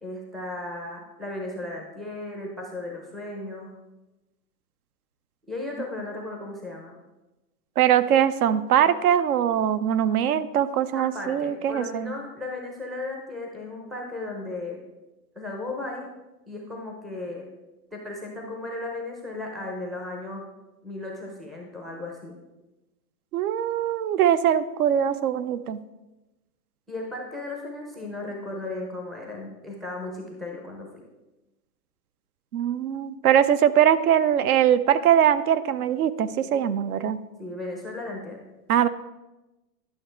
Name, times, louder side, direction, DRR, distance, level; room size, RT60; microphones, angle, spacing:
voice 1, 0.0-3.7 5.5-7.0 10.9-14.8 15.3-16.1 16.5-17.5 17.9-20.4 20.8-22.4 26.9-31.0 37.4-38.4, left 2 dB, ahead, -1 dB, 0.5 m, -35 dB
voice 2, 7.8-12.1 23.3-25.8 32.5-37.2 38.7-38.9, right 9 dB, 65° right, 13 dB, 0.7 m, -22 dB
11.5 x 6.0 x 4.4 m, 1.0 s
hypercardioid pair, 135°, 49 cm